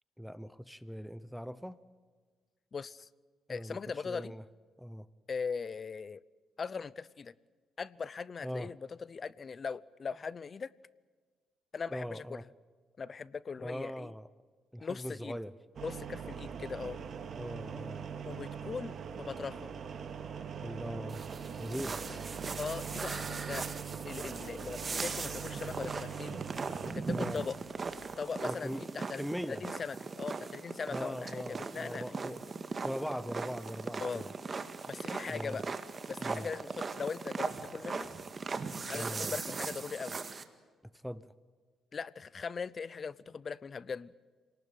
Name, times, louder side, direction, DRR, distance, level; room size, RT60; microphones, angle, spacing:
voice 1, 0.2-1.8 3.5-4.4 4.8-5.1 8.4-8.7 11.9-12.5 13.6-14.3 14.7-15.5 17.4-18.1 20.6-21.2 21.6-22.0 27.1-27.5 28.4-28.9 29.1-29.6 30.9-32.4 32.8-34.3 35.3-35.6 36.2-36.5 38.9-39.3 40.9-41.3, equal, ahead, 16 dB, 0.8 m, -40 dB
voice 2, 2.7-3.1 3.5-4.3 5.3-6.2 6.6-7.3 7.8-10.7 11.7-12.4 13.0-14.1 14.8-15.4 15.8-17.0 18.3-19.7 22.1-22.2 22.6-23.7 24.0-26.4 26.8-27.6 28.2-29.2 29.5-32.3 34.0-34.2 34.9-35.7 36.1-38.1 38.9-40.2 41.9-44.1, left 5 dB, 40° left, 21 dB, 0.7 m, -40 dB
sound 1, 15.7-28.2, right 7 dB, 55° right, 2.5 m, -42 dB
sound 2, 21.1-40.4, right 4 dB, 35° right, 1.8 m, -39 dB
27.0 x 19.0 x 9.2 m, 1.5 s
cardioid pair, 90°, 0 cm